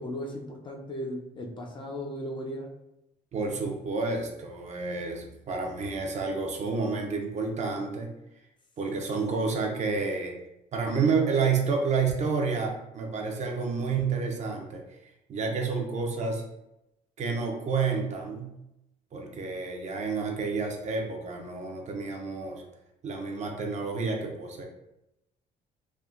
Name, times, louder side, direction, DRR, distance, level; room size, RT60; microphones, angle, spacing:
voice 1, 0.0-2.7, equal, 30° left, 1 dB, 0.5 m, -36 dB
voice 2, 3.3-8.1 8.8-10.4 10.7-14.8 15.3-16.4 17.2-18.5 19.1-22.6 23.0-24.6, right 4 dB, 45° right, 2 dB, 0.5 m, -29 dB
3.5 x 2.2 x 2.4 m, 0.88 s
cardioid pair, 110°, 17 cm